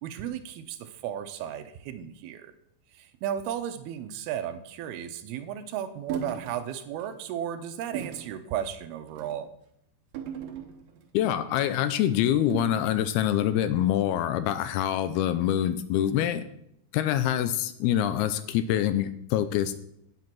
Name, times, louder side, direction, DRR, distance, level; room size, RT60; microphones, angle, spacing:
voice 1, 0.0-2.5 2.9-9.5, right 10 dB, 80° right, 8 dB, 2.6 m, -34 dB
sound 1, 6.1-6.5 7.0-7.2 7.9-8.3 9.1-9.4 10.1-11.1 12.5-13.0, right 8 dB, 65° right, 2.5 m, -37 dB
voice 2, 11.1-16.5 16.9-19.7, left 11 dB, 80° left, 11 dB, 2.5 m, -25 dB
9.4 x 7.4 x 6.0 m, 0.76 s
omnidirectional pair, 4.6 m